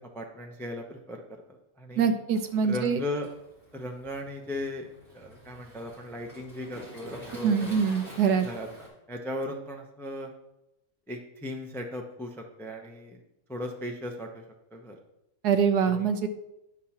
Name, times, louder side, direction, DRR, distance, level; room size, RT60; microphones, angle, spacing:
voice 1, 0.1-2.1 2.6-3.3 3.7-7.8 8.4-10.3 11.1-13.2 13.5-14.4 14.7-15.0 15.9-16.1, left 1 dB, 5° left, 3 dB, 0.3 m, -37 dB
voice 2, 2.0-3.0 7.4-8.5 15.4-16.3, right 6 dB, 80° right, 8 dB, 1.3 m, -24 dB
Waves surf, 2.3-8.9, equal, 35° right, 3.3 m, -48 dB
9.8 x 3.7 x 5.8 m, 0.89 s
omnidirectional pair, 1.7 m